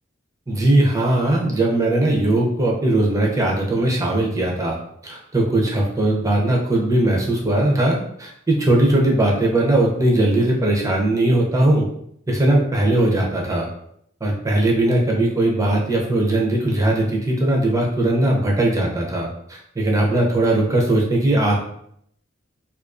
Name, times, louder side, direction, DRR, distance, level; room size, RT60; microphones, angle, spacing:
voice 1, 0.5-4.8 5.0-11.9 12.3-13.7 14.2-21.6, right 1 dB, 15° right, -2 dB, 0.5 m, -19 dB
2.3 x 2.3 x 2.4 m, 0.70 s
head